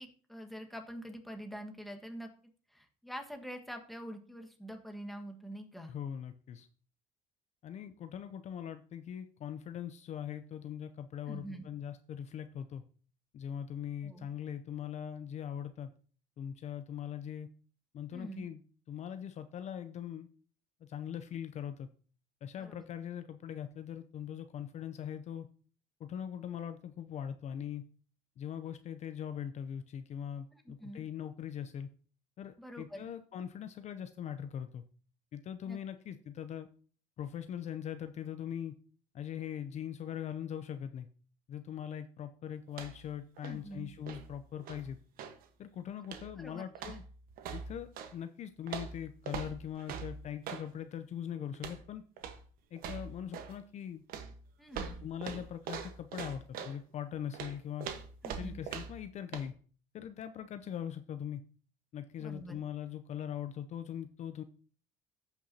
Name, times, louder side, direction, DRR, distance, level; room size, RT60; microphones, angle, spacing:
voice 1, 0.0-2.3 2.7-5.9 11.3-11.7 14.0-14.3 18.1-18.5 22.6-22.9 30.5-31.1 32.6-33.1 35.6-35.8 43.4-43.9 46.4-47.0 54.6-55.1 58.2-58.6 62.2-62.6, right 1 dB, ahead, 3 dB, 1.5 m, -45 dB
voice 2, 5.9-6.7 7.6-12.8 13.3-15.9 16.4-17.5 17.9-18.6 18.9-20.3 20.8-21.9 22.4-25.5 26.0-27.8 28.4-31.9 32.4-34.8 35.3-36.7 37.2-38.8 39.1-41.1 41.5-45.0 45.6-47.0 47.5-52.0 52.7-54.0 55.0-57.9 58.3-59.5 59.9-61.4 61.9-64.4, left 9 dB, 45° left, 10 dB, 0.5 m, -41 dB
sound 1, 42.7-43.1 43.4-45.4 46.0-46.4 46.7-48.1 48.7-50.7 51.5-51.9 52.2-52.4 52.8-53.6 54.1-56.8 57.3-59.1 59.3-59.5, right 6 dB, 65° right, 1.2 m, -43 dB
14.5 x 5.8 x 2.8 m, 0.42 s
cardioid pair, 105°, 16 cm